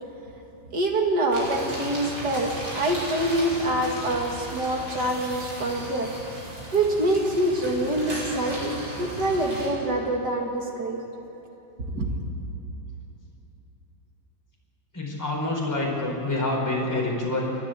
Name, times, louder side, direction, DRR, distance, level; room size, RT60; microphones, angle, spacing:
voice 1, 0.7-6.1 6.7-11.0 11.9-12.1, right 1 dB, 60° right, 1 dB, 2.6 m, -25 dB
sound 1, 1.3-9.7, equal, 85° right, 6.7 m, -36 dB
voice 2, 14.9-17.5, left 2 dB, 10° left, -3 dB, 4.1 m, -27 dB
29.5 x 11.5 x 8.9 m, 3.0 s
omnidirectional pair, 2.0 m